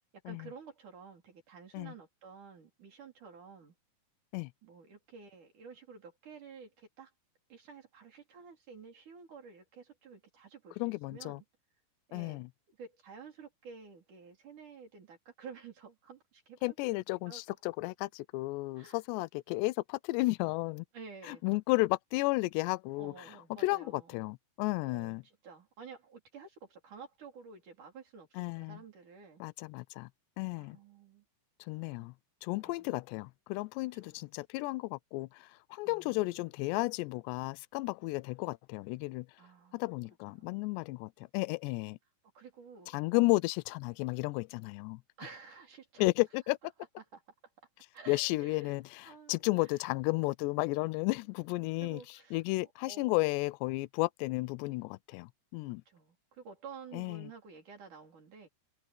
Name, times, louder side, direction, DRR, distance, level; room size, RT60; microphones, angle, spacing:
voice 1, 0.3-3.7 4.6-7.1 7.5-11.4 12.1-12.5 12.8-16.7 17.3-17.4 18.8-19.0 20.9-21.6 23.0-24.3 24.9-29.4 30.6-31.3 32.6-32.9 34.1-34.3 35.8-36.5 39.4-39.8 40.3-40.6 42.4-43.3 45.2-46.1 47.0-47.2 47.9-49.4 51.8-52.4 52.8-53.2 55.9-58.5, right 5 dB, 45° right, 5.4 m, -51 dB
voice 2, 10.8-11.4 12.1-12.5 16.6-20.9 21.2-23.3 23.6-25.2 28.4-28.8 29.4-30.1 30.4-30.8 31.6-32.1 32.4-39.3 39.7-42.0 42.9-45.0 46.0-46.6 48.1-55.8 56.9-57.3, left 23 dB, 80° left, 2.7 m, -33 dB
omnidirectional pair, 5.2 m